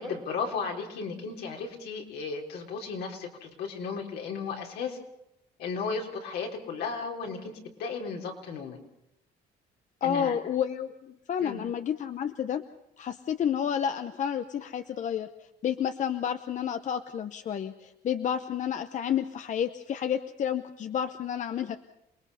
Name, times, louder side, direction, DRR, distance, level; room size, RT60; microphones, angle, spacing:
voice 1, 0.0-5.0 5.6-8.8 10.0-10.4 11.4-11.6, left 5 dB, 75° left, 1 dB, 3.9 m, -35 dB
voice 2, 10.0-12.6 13.0-15.3 15.6-21.8, left 9 dB, 45° left, 10 dB, 0.8 m, -30 dB
28.0 x 20.0 x 5.6 m, 0.85 s
cardioid pair, 110°, 17 cm